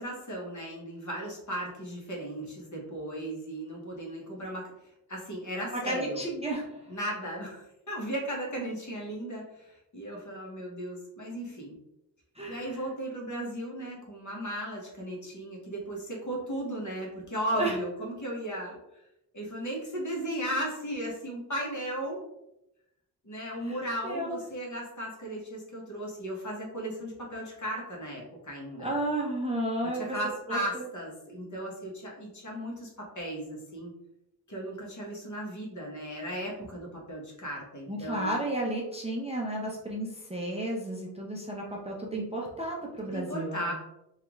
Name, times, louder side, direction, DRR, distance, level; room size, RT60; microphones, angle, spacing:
voice 1, 0.0-4.7 5.1-6.2 6.9-11.8 12.5-18.8 19.3-22.2 23.2-28.9 29.9-33.9 34.5-38.4 43.0-43.7, right 1 dB, 45° left, -2 dB, 1.1 m, -36 dB
voice 2, 5.7-6.7 12.4-12.8 17.5-17.8 23.6-24.4 28.8-30.2 30.5-30.8 37.9-43.7, right 1 dB, 15° right, -2 dB, 0.5 m, -33 dB
3.4 x 2.4 x 3.0 m, 0.85 s
wide cardioid pair, 95°, 41 cm